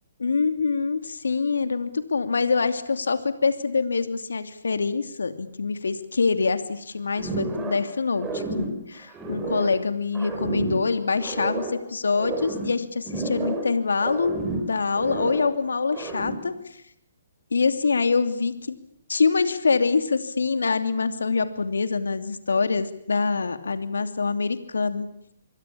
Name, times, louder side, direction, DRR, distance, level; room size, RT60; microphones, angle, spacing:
voice 1, 0.2-14.4 14.7-16.5 17.5-18.7 19.1-25.1, left 4 dB, 80° left, 10 dB, 2.8 m, -25 dB
sound 1, 7.2-9.8 10.1-11.8 12.1-13.8 14.0-15.6 15.9-16.5, right 2 dB, 15° right, 6.8 m, -31 dB
26.5 x 23.0 x 8.7 m, 0.70 s
hypercardioid pair, 135°, 0 cm